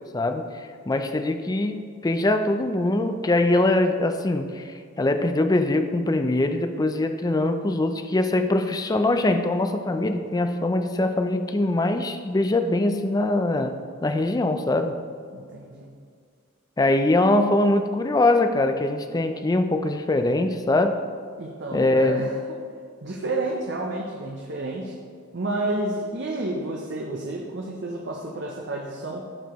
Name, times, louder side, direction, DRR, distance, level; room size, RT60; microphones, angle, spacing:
voice 1, 0.1-15.0 16.8-21.0 21.7-22.2, left 2 dB, 20° left, 8 dB, 0.4 m, -23 dB
voice 2, 15.3-16.0 21.4-22.6 23.0-25.0 25.3-29.2, right 2 dB, 55° right, 0 dB, 0.7 m, -30 dB
13.0 x 4.7 x 3.0 m, 2.1 s
head